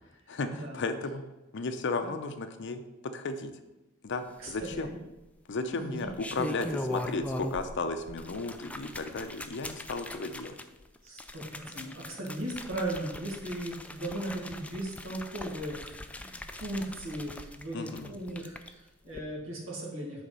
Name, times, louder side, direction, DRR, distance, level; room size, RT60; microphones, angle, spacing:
voice 1, 0.3-1.2 1.5-3.5 4.0-4.9 5.5-10.6 17.7-18.2, left 3 dB, 60° left, 8 dB, 0.6 m, -34 dB
voice 2, 4.4-5.0 5.6-6.1 11.0-15.9 16.2-20.2, right 1 dB, 70° right, -3 dB, 1.8 m, -37 dB
sound 1, 4.5-5.1 5.9-7.8 8.1-18.7 19.1-19.2, left 1 dB, 5° left, 0.4 m, -40 dB
8.1 x 3.5 x 5.5 m, 1.0 s
head